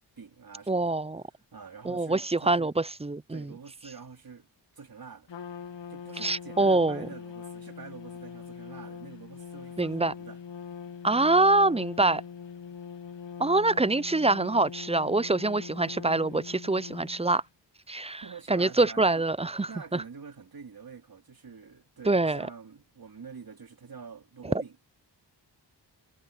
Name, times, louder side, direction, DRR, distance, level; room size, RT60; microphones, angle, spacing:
voice 1, 0.2-0.9 1.5-2.7 3.3-4.5 4.7-5.3 5.9-10.4 18.2-19.2 19.7-24.9, right 5 dB, 55° right, 3.0 m, -46 dB
voice 2, 0.7-1.2 1.8-3.5 6.2-7.1 9.8-10.1 11.0-12.2 13.4-17.4 17.9-18.2 18.5-20.0 22.1-22.4, right 2 dB, 15° right, 0.5 m, -25 dB
Trumpet, 5.3-17.4, left 7 dB, 85° left, 1.7 m, -42 dB
cardioid pair, 55°, 43 cm